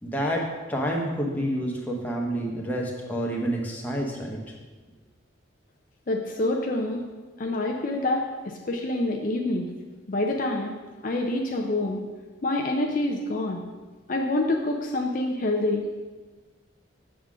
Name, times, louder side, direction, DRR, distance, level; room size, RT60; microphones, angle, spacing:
voice 1, 0.0-4.4, equal, 10° left, -1 dB, 0.9 m, -28 dB
voice 2, 6.1-7.0 7.4-9.7 10.1-10.7 11.0-12.0 12.4-13.6 14.1-15.8, left 2 dB, 40° left, 1 dB, 0.5 m, -26 dB
6.9 x 3.7 x 6.1 m, 1.3 s
head